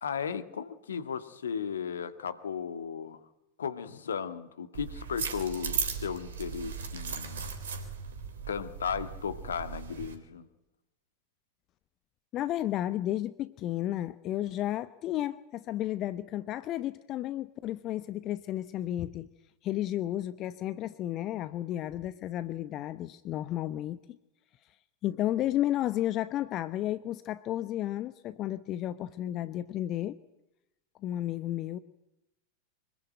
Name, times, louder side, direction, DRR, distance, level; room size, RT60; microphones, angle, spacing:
voice 1, 0.0-3.2 3.6-7.5 8.5-10.5, left 7 dB, 70° left, 11 dB, 1.9 m, -35 dB
sound 1, 4.7-10.1, right 6 dB, 65° right, 3.9 m, -37 dB
voice 2, 12.3-19.3 19.6-24.0 25.0-30.2 31.0-31.8, left 13 dB, 35° left, 14 dB, 0.9 m, -32 dB
25.0 x 21.5 x 9.3 m, 0.89 s
figure-of-eight pair, 90°, 0 cm